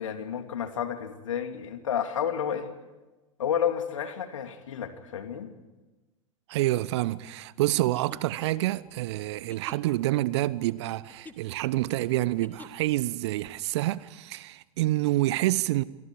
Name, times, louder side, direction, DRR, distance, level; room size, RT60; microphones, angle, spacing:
voice 1, 0.0-2.7 3.4-5.5, left 8 dB, 70° left, 2.7 m, -31 dB
voice 2, 6.5-15.8, right 16 dB, 55° right, 0.9 m, -27 dB
sound 1, 7.9-13.0, left 3 dB, 10° left, 1.7 m, -51 dB
27.0 x 23.5 x 4.8 m
figure-of-eight pair, 95°, 17 cm